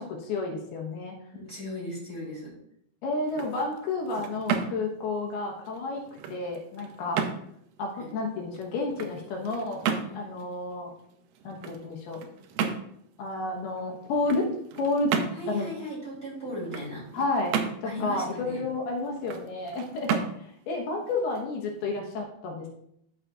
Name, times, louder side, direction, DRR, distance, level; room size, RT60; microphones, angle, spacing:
voice 1, 0.0-1.2 3.0-7.2 7.8-9.8 10.1-10.9 11.4-12.2 13.2-14.5 14.8-15.1 15.5-15.7 17.1-17.5 17.8-22.7, left 3 dB, 75° left, 0 dB, 3.1 m, -31 dB
voice 2, 1.3-2.5 7.9-8.1 10.0-10.3 15.4-17.0 17.8-18.6, equal, 20° right, -7 dB, 3.1 m, -37 dB
sound 1, 3.1-22.0, right 7 dB, 75° right, 2.1 m, -35 dB
11.0 x 6.4 x 2.5 m, 0.71 s
omnidirectional pair, 4.6 m